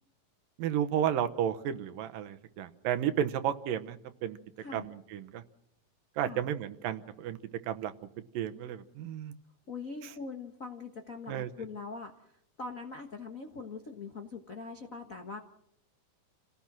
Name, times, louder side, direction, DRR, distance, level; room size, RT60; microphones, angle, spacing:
voice 1, 0.6-4.4 4.7-5.4 6.2-7.4 7.7-7.9 8.3-9.3 11.3-11.5, right 10 dB, 80° right, 9 dB, 2.8 m, -32 dB
voice 2, 9.7-15.4, left 4 dB, 60° left, 4 dB, 0.8 m, -42 dB
29.0 x 17.5 x 6.2 m, 0.75 s
omnidirectional pair, 4.0 m